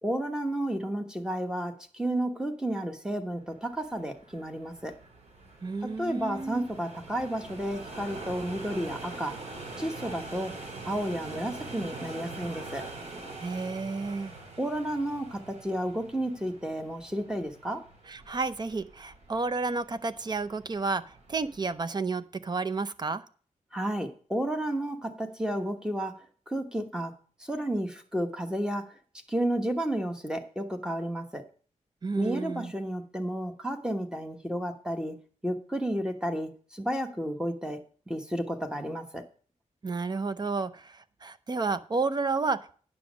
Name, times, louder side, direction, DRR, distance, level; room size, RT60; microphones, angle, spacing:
voice 1, 0.0-5.0 5.8-9.4 9.8-10.5 10.8-12.9 14.6-17.8 23.7-26.2 26.5-27.1 27.4-28.9 29.3-31.5 32.1-35.2 35.4-37.8 38.1-39.2, right 1 dB, 5° right, 5 dB, 1.1 m, -32 dB
sound 1, 3.5-21.8, right 3 dB, 55° right, 3.1 m, -44 dB
voice 2, 5.6-6.7 13.4-14.3 18.1-21.0 21.3-23.2 32.0-32.7 39.8-42.7, right 4 dB, 35° right, 13 dB, 0.6 m, -31 dB
9.6 x 6.1 x 6.2 m, 0.42 s
wide cardioid pair, 145°, 13 cm